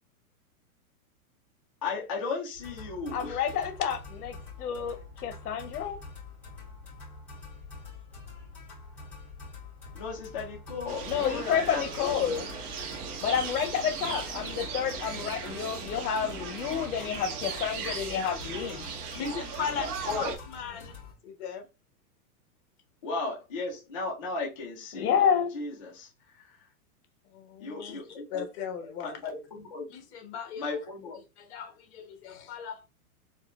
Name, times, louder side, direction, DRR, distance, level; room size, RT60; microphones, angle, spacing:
voice 1, 1.8-3.5 9.0-9.1 9.9-12.9 20.0-20.4 23.0-26.7 27.6-28.4 28.8-29.9 30.6-31.2, left 4 dB, 25° left, 0.3 m, -36 dB
sound 1, 2.5-21.1, left 3 dB, 5° left, 1.6 m, -46 dB
voice 2, 3.1-6.0 11.1-12.4 13.2-18.9 24.9-25.5, left 8 dB, 80° left, 0.7 m, -29 dB
sound 2, 10.9-20.4, right 6 dB, 85° right, 1.0 m, -38 dB
voice 3, 19.1-21.7 27.3-28.0 28.3-29.2 29.9-30.8 31.4-32.9, left 7 dB, 45° left, 0.9 m, -38 dB
4.3 x 2.2 x 2.2 m
supercardioid pair, 165°, 44 cm